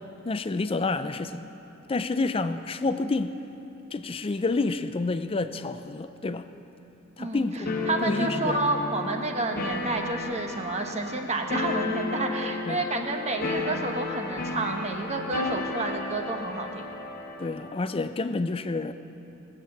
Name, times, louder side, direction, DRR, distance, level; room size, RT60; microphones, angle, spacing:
voice 1, 0.2-1.5 1.9-3.3 3.9-6.5 7.2-7.7 8.0-8.7 12.6-12.9 17.4-18.9, left 3 dB, 25° left, 11 dB, 0.4 m, -29 dB
sound 1, 7.6-17.7, left 3 dB, 45° left, 1.3 m, -33 dB
voice 2, 7.9-16.9, right 2 dB, 30° right, 4 dB, 1.1 m, -30 dB
18.0 x 7.6 x 7.2 m, 2.9 s
head